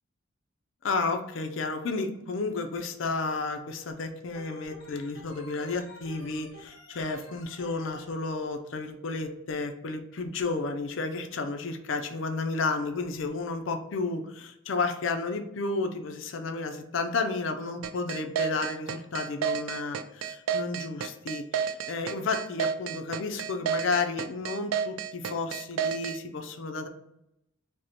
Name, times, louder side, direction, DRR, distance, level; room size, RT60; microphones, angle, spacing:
voice 1, 0.8-26.9, left 3 dB, 70° left, 6 dB, 0.5 m, -32 dB
Organ, 4.3-8.1, equal, 55° left, 1.1 m, -49 dB
sound 1, 17.8-26.2, right 8 dB, 85° right, 0.4 m, -30 dB
5.1 x 2.1 x 2.9 m, 0.83 s
head